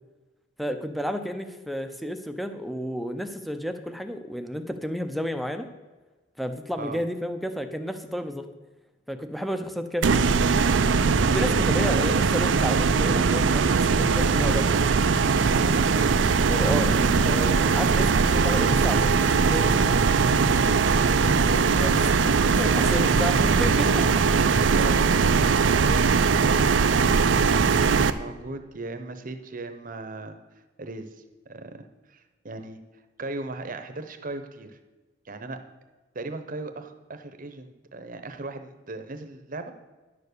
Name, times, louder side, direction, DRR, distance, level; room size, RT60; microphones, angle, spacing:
voice 1, 0.6-5.7 6.4-8.5 9.1-10.4 11.3-14.8 16.5-20.1 21.7-22.2 22.6-24.2, equal, ahead, 8 dB, 0.7 m, -31 dB
sound 1, 10.0-28.1, right 5 dB, 75° right, 0.5 m, -21 dB
voice 2, 15.6-15.9 20.8-21.0 23.0-23.1 24.4-30.4 30.8-32.8 33.2-34.8 35.2-35.6 36.1-39.7, right 2 dB, 45° right, 8 dB, 0.9 m, -38 dB
10.5 x 7.0 x 6.7 m, 1.2 s
head